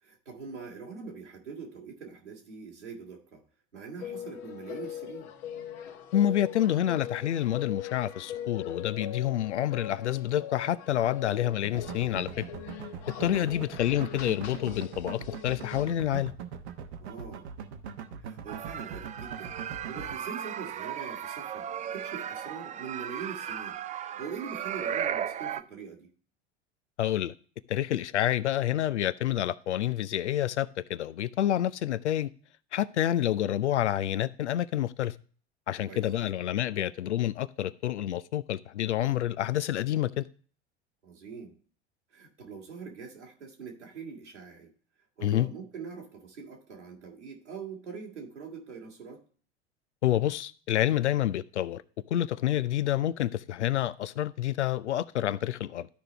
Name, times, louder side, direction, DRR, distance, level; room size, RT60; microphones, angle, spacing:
voice 1, 0.0-3.4 3.7-5.3 13.2-13.5 17.0-17.5 18.2-21.7 21.9-23.8 24.2-26.1 35.9-36.0 41.0-41.6 42.1-44.7 45.2-49.2, right 5 dB, 90° right, 2.4 m, -43 dB
sound 1, 4.0-15.9, left 9 dB, 65° left, 1.3 m, -41 dB
voice 2, 6.1-12.5 13.2-16.3 27.0-27.3 27.7-32.3 32.7-35.1 35.7-40.3 45.2-45.5 50.0-51.8 52.1-55.9, left 12 dB, 80° left, 0.5 m, -28 dB
sound 2, 11.6-20.1, right 7 dB, 70° right, 1.1 m, -41 dB
sound 3, 18.5-25.6, right 9 dB, 20° right, 0.4 m, -36 dB
13.0 x 5.1 x 3.3 m
figure-of-eight pair, 80°, 34 cm